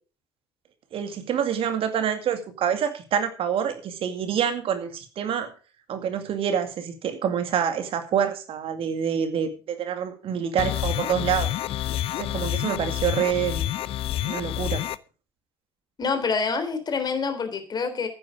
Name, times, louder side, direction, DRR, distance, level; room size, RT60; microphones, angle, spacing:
voice 1, 0.9-5.5 5.9-11.5 12.2-13.7 14.2-14.8, right 8 dB, 50° right, 8 dB, 2.2 m, -27 dB
sound 1, 10.6-15.0, left 13 dB, 50° left, 0.7 m, -28 dB
voice 2, 16.0-18.1, left 5 dB, 35° left, 7 dB, 3.5 m, -26 dB
14.0 x 9.9 x 4.9 m, 0.37 s
figure-of-eight pair, 55°, 12 cm